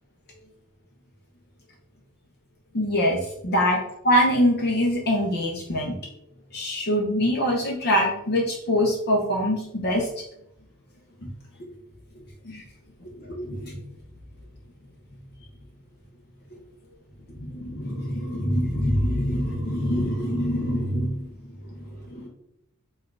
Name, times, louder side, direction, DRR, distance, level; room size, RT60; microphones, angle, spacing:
voice 1, 2.7-3.8 4.0-6.0 6.5-10.2 11.2-11.3 12.4-12.6 13.2-13.8 17.4-21.3 22.0-22.3, equal, 50° left, -1 dB, 0.8 m, -24 dB
4.3 x 2.4 x 4.5 m, 0.79 s
head